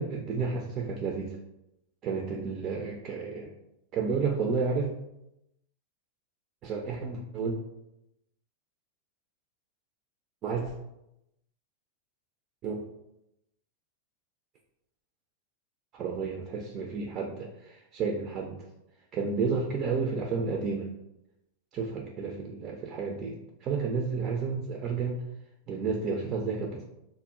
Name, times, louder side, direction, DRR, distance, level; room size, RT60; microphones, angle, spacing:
voice 1, 0.0-1.4 2.0-3.5 3.9-4.9 6.6-7.6 10.4-10.7 12.6-12.8 15.9-18.6 19.1-20.9 21.7-25.2 25.7-26.8, right 5 dB, 40° right, 1 dB, 0.4 m, -31 dB
2.0 x 2.0 x 3.5 m, 0.87 s
hypercardioid pair, 100°, 0 cm